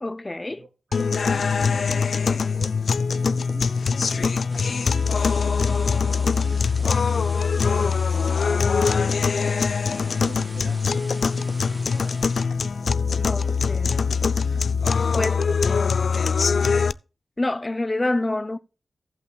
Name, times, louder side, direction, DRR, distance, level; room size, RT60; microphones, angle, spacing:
voice 1, 0.0-0.6 13.2-14.1 15.2-15.5 17.4-18.6, left 2 dB, 25° left, 0.6 m, -27 dB
voice 2, 0.6-2.8 3.1-9.7 10.2-14.8 15.1-17.0, right 3 dB, 75° right, 3.1 m, -44 dB
sound 1, 0.9-16.9, left 5 dB, 80° left, 0.3 m, -22 dB
sound 2, 4.5-12.4, right 1 dB, 25° right, 1.2 m, -44 dB
17.0 x 5.7 x 2.3 m
wide cardioid pair, 70°, 0 cm